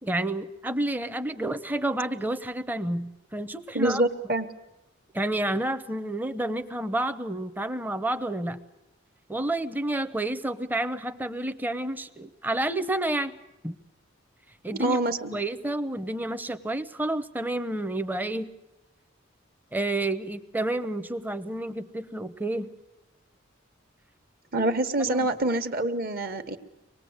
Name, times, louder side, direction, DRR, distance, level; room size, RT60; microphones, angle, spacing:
voice 1, 0.0-4.0 5.1-8.6 9.3-13.4 13.6-13.8 14.6-15.0 15.3-18.5 19.7-22.7 25.1-25.3, right 1 dB, 10° right, 10 dB, 0.7 m, -30 dB
voice 2, 3.7-4.5 14.8-15.3 24.5-26.6, right 2 dB, 50° right, 8 dB, 1.3 m, -26 dB
25.0 x 19.5 x 8.0 m, 0.96 s
head